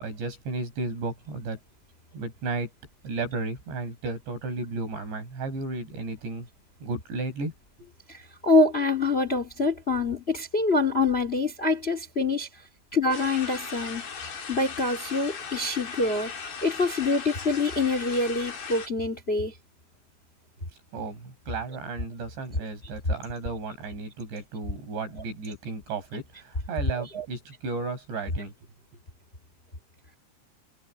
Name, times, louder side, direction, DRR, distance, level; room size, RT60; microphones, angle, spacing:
voice 1, 0.0-1.6 2.1-2.7 3.0-6.5 6.8-7.5 7.8-7.9 20.9-28.5, right 3 dB, 80° right, 9.5 m, -34 dB
voice 2, 8.4-12.5 12.9-14.0 14.5-16.3 16.6-19.5 26.9-27.2, left 3 dB, 15° left, 2.5 m, -25 dB
sound 1, 13.1-18.9, left 6 dB, 65° left, 6.7 m, -38 dB
omnidirectional pair, 5.0 m